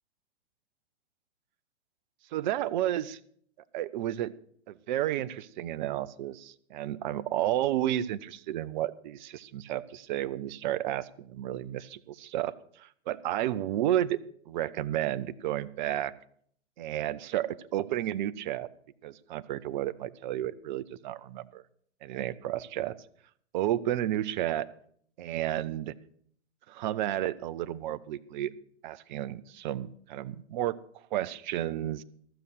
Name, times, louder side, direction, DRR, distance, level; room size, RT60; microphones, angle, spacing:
voice 1, 2.3-3.2 3.7-4.3 4.7-16.1 16.8-18.7 19.0-21.6 22.0-22.9 23.5-24.7 25.2-25.9 26.7-28.5 28.8-30.8 31.1-32.0, right 13 dB, 40° right, 16 dB, 0.6 m, -32 dB
14.0 x 6.9 x 6.4 m, 0.62 s
figure-of-eight pair, 115°, 36 cm